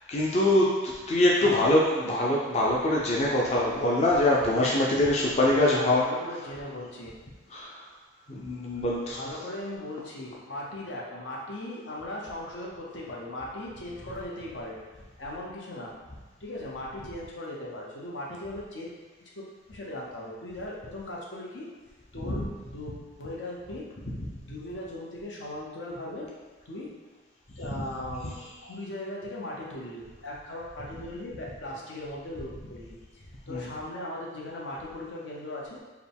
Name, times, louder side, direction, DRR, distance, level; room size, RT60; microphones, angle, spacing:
voice 1, 0.1-6.0 7.5-7.8 8.3-9.2 22.2-22.4 33.5-33.6, left 1 dB, 35° left, -4 dB, 0.5 m, -24 dB
voice 2, 1.4-1.7 2.0-2.2 5.5-7.1 8.7-14.9 15.2-15.9 16.4-19.0 19.3-21.7 22.1-22.4 22.7-23.9 24.5-26.3 26.7-26.9 27.6-35.8, left 1 dB, 80° left, -3 dB, 0.9 m, -38 dB
4.8 x 2.2 x 3.5 m, 1.3 s
head